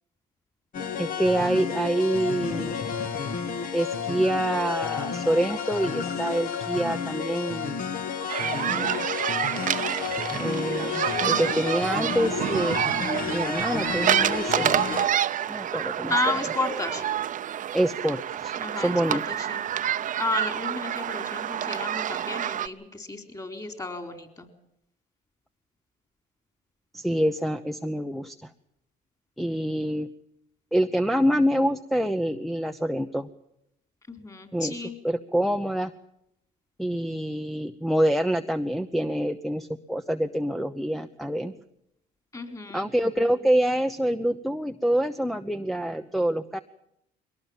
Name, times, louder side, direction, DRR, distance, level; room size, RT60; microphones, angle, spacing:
sound 1, 0.7-15.1, left 6 dB, 55° left, 2.4 m, -31 dB
voice 1, 1.0-2.8 3.7-7.7 8.4-9.0 10.4-12.8 13.3-14.7 15.5-16.4 17.7-19.2 26.9-28.5 29.4-30.1 30.7-33.3 34.5-35.9 36.8-41.5 42.7-46.6, right 1 dB, ahead, 6 dB, 0.9 m, -26 dB
sound 2, 8.3-22.7, right 10 dB, 50° right, 0.9 m, -28 dB
voice 2, 16.1-17.1 18.6-19.9 20.2-24.5 34.1-35.0 42.3-42.9, left 2 dB, 20° left, 7 dB, 4.1 m, -32 dB
22.5 x 18.5 x 7.3 m, 0.79 s
cardioid pair, 110°, 17 cm